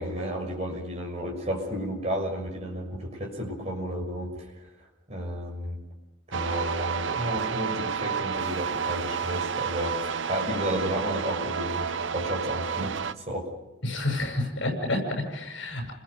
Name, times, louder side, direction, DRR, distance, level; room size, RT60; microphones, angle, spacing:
voice 1, 0.0-4.5 5.1-5.8 6.3-13.0 13.3-13.5, equal, 35° right, -1 dB, 6.7 m, -32 dB
sound 1, 6.3-13.1, right 6 dB, 75° right, 0.7 m, -30 dB
voice 2, 13.8-15.9, left 2 dB, 70° left, 2 dB, 7.6 m, -29 dB
30.0 x 21.5 x 5.3 m, 1.0 s
head